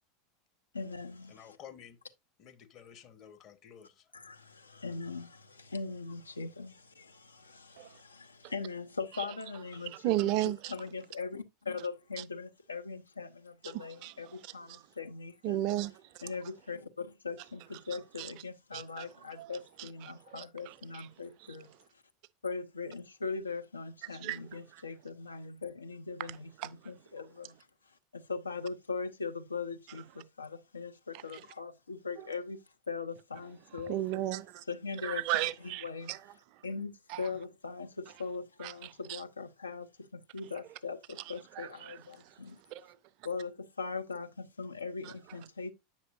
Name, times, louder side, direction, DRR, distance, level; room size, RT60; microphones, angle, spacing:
voice 1, 0.7-1.6 4.1-10.2 10.7-15.6 16.2-21.7 22.4-27.6 28.1-32.6 32.9-34.0 34.7-35.2 35.8-36.1 36.6-42.6 43.2-45.7, left 4 dB, 80° left, 0.6 m, -40 dB
voice 2, 1.3-2.0 2.4-4.1, left 8 dB, 40° left, 1.0 m, -52 dB
voice 3, 9.9-10.7 12.2-12.3 13.6-14.8 15.4-16.2 18.2-18.3 18.7-19.1 19.4-21.1 21.5-21.6 24.0-24.4 24.7-24.8 26.2-26.7 31.1-31.4 32.2-32.3 33.7-34.6 35.0-36.2 36.5-36.6 37.1-37.3 38.6-39.2 41.2-42.4 42.7-43.0 45.0-45.1, right 15 dB, 50° right, 0.4 m, -36 dB
8.2 x 5.9 x 2.5 m
figure-of-eight pair, 80°, 0 cm